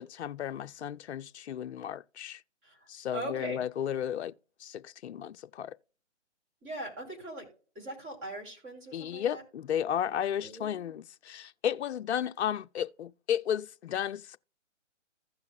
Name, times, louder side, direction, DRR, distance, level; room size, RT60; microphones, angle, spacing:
voice 1, 0.0-2.4 2.9-4.3 4.6-5.7 8.9-14.4, left 9 dB, 65° left, 0.5 m, -33 dB
voice 2, 3.1-3.6 6.6-7.5 7.7-9.4 10.4-10.9, right 2 dB, 20° right, 3.2 m, -41 dB
15.5 x 5.8 x 2.3 m
hypercardioid pair, 150°, 36 cm